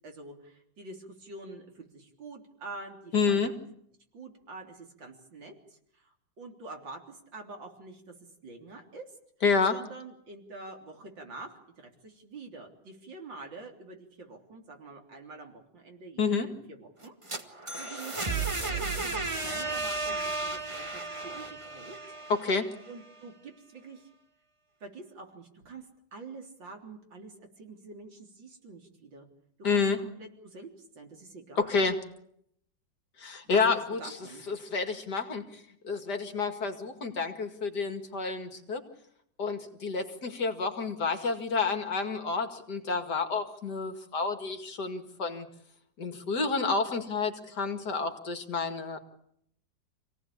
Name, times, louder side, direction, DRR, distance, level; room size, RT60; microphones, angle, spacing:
voice 1, 0.0-3.4 4.1-8.1 8.4-9.0 9.7-17.1 17.5-22.0 22.9-24.1 24.8-29.3 29.7-31.8 33.4-34.5, right 3 dB, 85° right, 3 dB, 4.3 m, -46 dB
voice 2, 3.1-3.5 9.4-9.8 16.2-16.5 22.3-22.7 29.6-30.0 31.6-32.0 33.2-34.2 34.5-38.8 39.4-45.5 46.0-49.0, left 4 dB, 60° left, 6 dB, 2.8 m, -29 dB
sound 1, 17.0-22.9, right 3 dB, 15° right, 1.6 m, -34 dB
27.0 x 18.0 x 8.6 m, 0.72 s
omnidirectional pair, 2.0 m